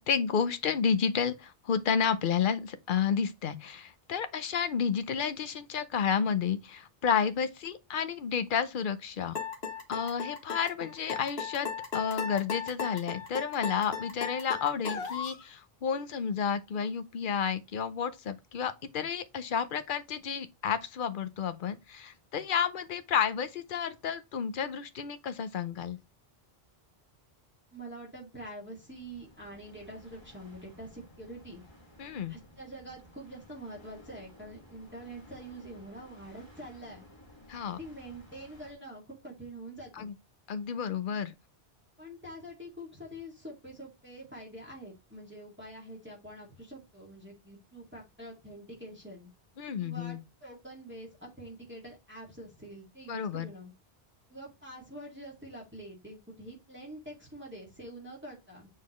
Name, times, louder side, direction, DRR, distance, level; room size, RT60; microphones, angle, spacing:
voice 1, 0.0-9.4 9.9-26.0 32.0-32.3 37.5-37.8 39.9-40.1 40.5-41.3 49.6-50.2 53.1-53.5, left 7 dB, 55° left, 0.8 m, -31 dB
sound 1, 9.3-15.4, left 6 dB, 80° left, 1.3 m, -36 dB
voice 2, 27.7-31.6 32.3-37.1 37.7-40.1 42.0-49.3 49.8-53.7 54.3-58.7, right 1 dB, 10° right, 2.2 m, -46 dB
sound 2, 28.6-38.7, left 1 dB, 25° left, 2.2 m, -56 dB
7.3 x 4.2 x 3.1 m
omnidirectional pair, 1.1 m